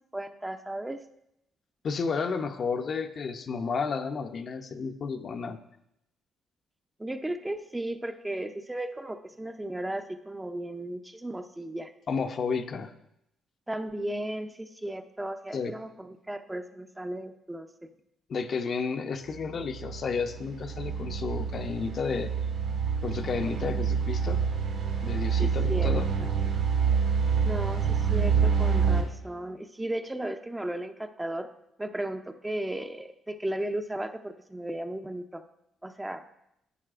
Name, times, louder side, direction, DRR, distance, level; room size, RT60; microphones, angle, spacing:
voice 1, 0.1-1.0 7.0-11.9 13.7-17.7 25.4-25.9 27.4-31.5 31.8-35.4 35.8-36.2, right 1 dB, 10° right, 7 dB, 0.6 m, -35 dB
voice 2, 1.8-5.6 12.1-12.9 15.5-15.7 18.3-22.3 23.0-24.4 25.0-26.1, left 5 dB, 50° left, 6 dB, 0.7 m, -32 dB
sound 1, 19.3-29.0, right 6 dB, 70° right, 2.5 m, -27 dB
11.0 x 8.4 x 2.5 m, 0.81 s
cardioid pair, 90°, 0 cm